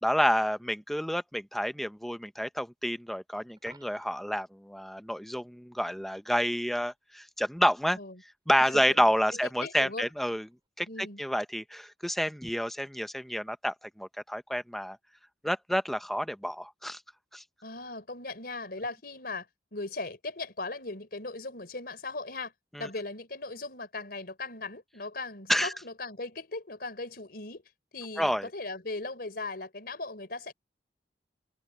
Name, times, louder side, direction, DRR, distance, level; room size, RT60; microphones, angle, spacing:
voice 1, 0.0-8.0 8.5-10.5 10.8-15.0 15.4-17.0 17.3-17.4 22.7-22.9 25.5-25.7 28.2-28.5, equal, ahead, 0.9 m, -29 dB
Coin (dropping), 3.6-4.4 10.5-10.7, right 3 dB, 25° right, 5.5 m, -56 dB
voice 2, 8.6-9.0 9.3-10.1 10.9-11.2 17.6-22.5 22.8-27.6 27.9-30.5, left 3 dB, 60° left, 4.4 m, -38 dB
head